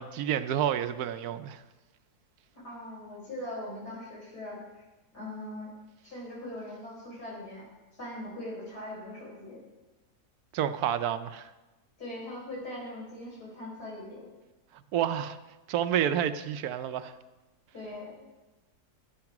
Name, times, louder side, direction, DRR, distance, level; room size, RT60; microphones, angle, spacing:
voice 1, 0.0-1.6 10.5-11.5 14.9-15.4 15.7-17.1, right 10 dB, 75° right, 1.1 m, -29 dB
voice 2, 2.5-4.8 5.1-5.7 6.0-7.7 7.9-9.6 12.0-14.3 17.7-18.3, left 1 dB, 90° left, 5.0 m, -41 dB
11.5 x 8.7 x 5.9 m
omnidirectional pair, 1.6 m